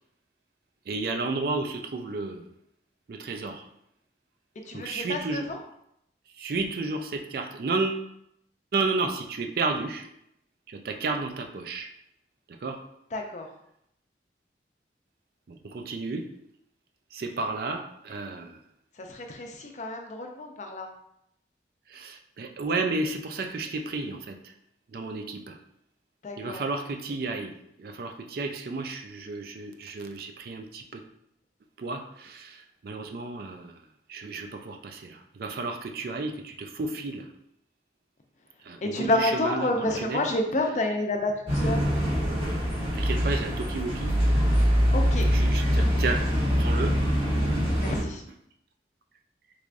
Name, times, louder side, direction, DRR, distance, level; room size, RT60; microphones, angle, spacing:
voice 1, 0.9-2.4 3.1-3.6 4.7-5.5 6.4-8.0 8.7-10.1 10.7-11.9 12.6-12.8 15.6-16.3 17.1-18.6 21.9-24.4 24.9-25.6 26.4-31.0 31.8-32.6 32.8-33.7 34.1-37.3 38.7-40.2 42.9-44.1 45.3-46.3 46.6-47.0, right 3 dB, 55° right, 5 dB, 0.4 m, -32 dB
voice 2, 4.7-5.6 13.1-13.5 19.0-20.9 26.2-26.6 38.8-41.9 44.9-45.2 47.8-48.2, left 1 dB, 40° left, 3 dB, 0.5 m, -29 dB
sound 1, 41.5-48.0, equal, 30° right, 1.4 m, -24 dB
3.5 x 3.3 x 2.5 m, 0.75 s
head